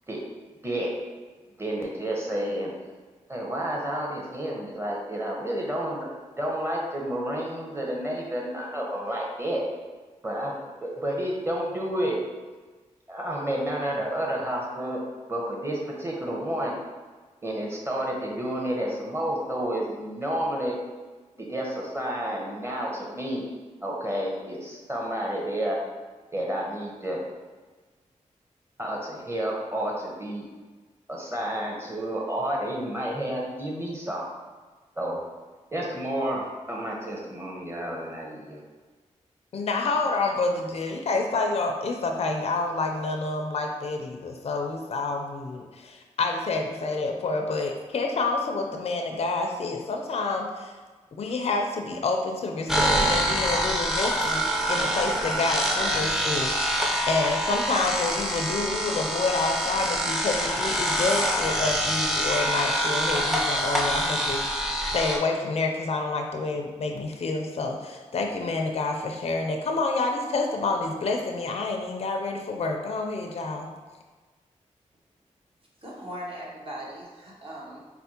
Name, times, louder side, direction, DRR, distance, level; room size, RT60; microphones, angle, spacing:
voice 1, 1.6-2.7 3.3-6.1 6.4-9.6 10.2-10.6 10.8-12.2 13.1-15.0 15.3-16.7 17.4-20.7 21.4-23.4 23.8-25.8 26.3-27.2 28.8-30.4 31.1-34.2 35.0-35.2 35.7-38.6, right 1 dB, 20° right, -2 dB, 1.0 m, -30 dB
voice 2, 39.5-50.7 51.2-73.7, left 3 dB, 50° left, 3 dB, 0.4 m, -28 dB
sound 1, 52.7-65.2, equal, 5° right, 0.5 m, -26 dB
voice 3, 75.8-77.8, equal, 45° right, -4 dB, 0.9 m, -39 dB
4.2 x 2.0 x 2.8 m, 1.4 s
cardioid pair, 45°, 13 cm